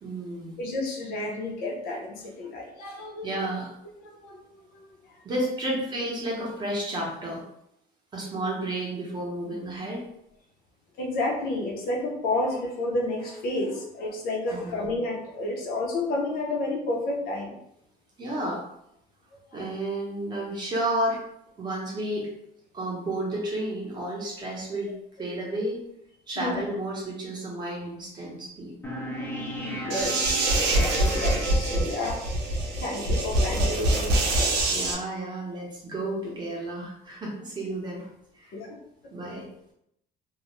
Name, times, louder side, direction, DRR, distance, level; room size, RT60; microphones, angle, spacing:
voice 1, 0.0-0.6 3.2-3.7 5.2-7.4 8.1-10.0 14.5-14.9 18.2-18.6 19.5-21.2 21.6-22.3 22.7-24.9 25.2-25.8 26.3-28.7 34.7-38.1 38.3-38.5 39.1-39.5, right 1 dB, 25° right, -2 dB, 0.6 m, -31 dB
voice 2, 0.6-3.4 4.0-5.2 11.0-17.6 19.3-19.6 26.4-26.6 29.2-29.3 29.6-32.2 32.8-34.9 38.5-38.8, left 2 dB, 60° left, 0 dB, 0.6 m, -31 dB
sound 1, 28.8-32.1, equal, 10° left, 0.4 m, -35 dB
sound 2, 29.9-34.9, right 1 dB, 85° right, 0.6 m, -25 dB
2.3 x 2.0 x 2.9 m, 0.77 s
cardioid pair, 180°, 17 cm